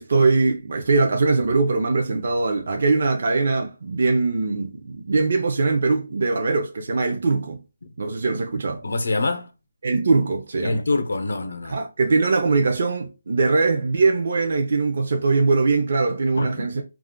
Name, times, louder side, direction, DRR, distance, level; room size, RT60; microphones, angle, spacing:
voice 1, 0.0-7.6 8.0-8.8 9.8-10.8 11.7-16.8, right 3 dB, 50° right, 0.4 m, -21 dB
voice 2, 8.8-9.5 10.6-11.8 16.3-16.7, left 2 dB, 75° left, 0.6 m, -25 dB
2.3 x 2.1 x 3.6 m
hypercardioid pair, 170°, 0 cm